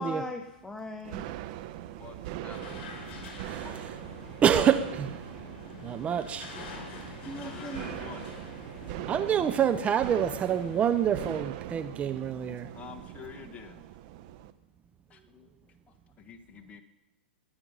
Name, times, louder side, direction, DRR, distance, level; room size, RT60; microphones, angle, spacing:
voice 1, 0.0-1.4 7.2-7.9, left 1 dB, 5° left, 0.9 m, -38 dB
sound 1, 1.0-14.5, right 13 dB, 45° right, 0.9 m, -41 dB
voice 2, 2.0-3.0 3.6-3.8 7.4-8.4 12.7-13.8 15.1-16.8, left 6 dB, 20° left, 1.5 m, -48 dB
sound 2, 2.5-11.4, left 4 dB, 40° left, 5.9 m, -46 dB
voice 3, 3.2-3.6 4.4-5.2 5.8-6.5 7.1-7.2 9.1-12.7, right 8 dB, 20° right, 0.6 m, -27 dB
21.5 x 8.7 x 5.5 m
hypercardioid pair, 120°, 6 cm